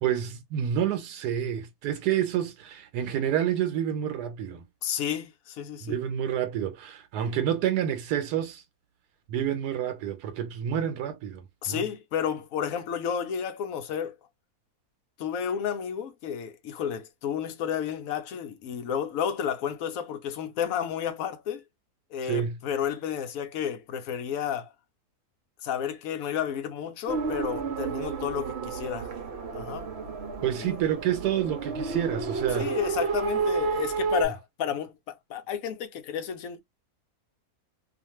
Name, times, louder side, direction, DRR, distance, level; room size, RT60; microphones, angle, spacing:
voice 1, 0.0-4.6 5.8-8.6 9.3-11.8 22.2-22.6 30.4-32.7, right 10 dB, 90° right, 1.2 m, -28 dB
voice 2, 4.8-6.0 11.6-14.2 15.2-21.6 22.1-24.7 25.6-29.1 29.5-29.9 30.6-30.7 32.5-36.6, left 8 dB, 70° left, 0.9 m, -31 dB
sound 1, 27.1-34.3, right 5 dB, 55° right, 0.8 m, -31 dB
2.5 x 2.4 x 2.9 m
omnidirectional pair, 1.7 m